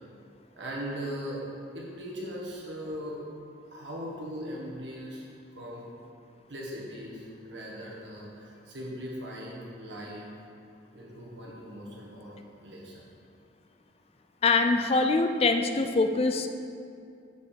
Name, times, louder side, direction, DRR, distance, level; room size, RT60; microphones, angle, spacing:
voice 1, 0.6-1.4 1.7-3.2 3.7-5.3 5.5-5.9 6.5-10.3 10.9-13.0, equal, 70° right, -4 dB, 1.7 m, -39 dB
voice 2, 14.4-16.5, left 3 dB, 30° left, 7 dB, 0.4 m, -24 dB
6.6 x 5.4 x 6.9 m, 2.5 s
head